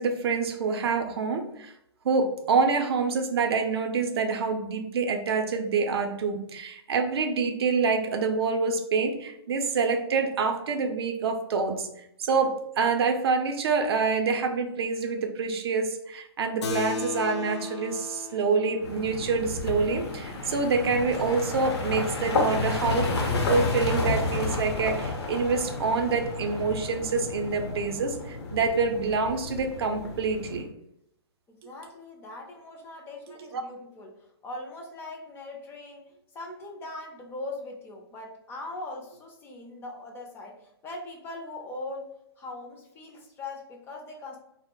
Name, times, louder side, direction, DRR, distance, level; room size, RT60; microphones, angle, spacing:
voice 1, 0.0-1.7 2.0-11.9 12.2-23.1 23.4-30.7 33.5-33.6, right 4 dB, 65° right, 5 dB, 0.5 m, -26 dB
Keyboard (musical), 16.6-21.5, left 5 dB, 90° left, 0.4 m, -38 dB
sound 1, 18.8-30.6, left 3 dB, 70° left, 0.8 m, -31 dB
voice 2, 31.5-44.4, left 2 dB, 15° left, 0 dB, 0.4 m, -41 dB
2.1 x 2.0 x 3.6 m, 0.78 s
hypercardioid pair, 135°, 14 cm